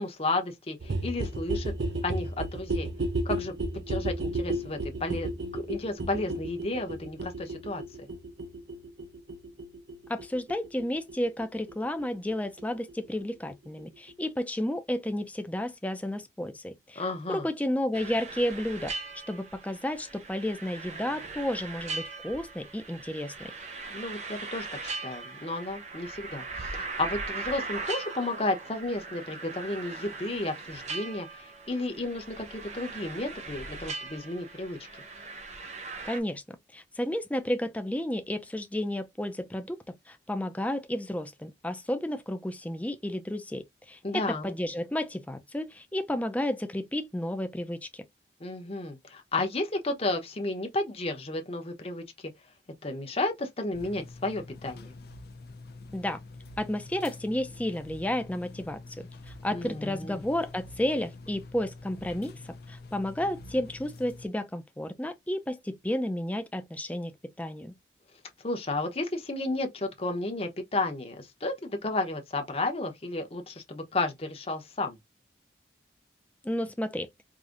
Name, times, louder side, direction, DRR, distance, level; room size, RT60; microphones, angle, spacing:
voice 1, 0.0-1.7 2.0-2.9 3.2-7.8 17.0-17.5 23.9-34.8 44.0-44.5 48.4-52.3 52.8-54.9 59.5-60.2 68.4-75.0, left 2 dB, 35° left, 0.9 m, -32 dB
sound 1, 0.8-12.3 12.6-12.7 12.9-13.0 13.2-13.3 13.5-13.6 13.8-13.9 14.1-14.2, right 1 dB, 80° right, 0.7 m, -33 dB
voice 2, 10.1-18.9 19.3-23.5 36.1-36.4 36.7-48.0 55.9-56.2 56.6-59.1 59.4-67.7 76.4-77.1, left 1 dB, 10° left, 0.5 m, -32 dB
sound 2, 17.9-36.2, right 3 dB, 40° right, 0.9 m, -39 dB
sound 3, 53.7-64.3, left 2 dB, 60° left, 0.6 m, -46 dB
4.8 x 2.6 x 2.5 m
head